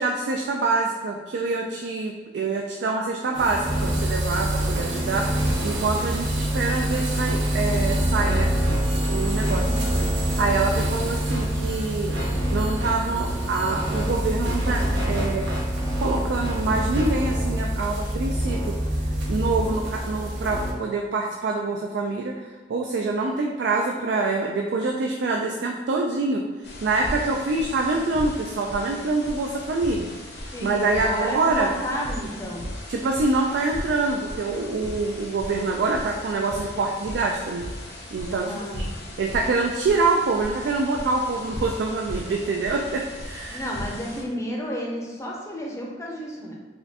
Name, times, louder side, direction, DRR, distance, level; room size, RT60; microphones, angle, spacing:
voice 1, 0.0-5.3 5.6-8.5 9.1-9.7 10.4-12.1 12.5-15.5 16.0-18.8 19.3-26.4 26.8-30.1 30.6-31.7 32.9-37.6 38.1-38.5 38.8-38.9 39.2-43.6, right 3 dB, 65° right, 1 dB, 0.3 m, -25 dB
sound 1, 3.3-20.7, equal, 80° right, 0.8 m, -25 dB
voice 2, 9.6-10.1 30.5-32.7 38.4-39.2 43.5-46.5, equal, 15° left, -2 dB, 0.6 m, -32 dB
sound 2, 26.6-44.2, left 1 dB, 60° left, 0.7 m, -37 dB
4.2 x 2.3 x 2.8 m, 1.3 s
head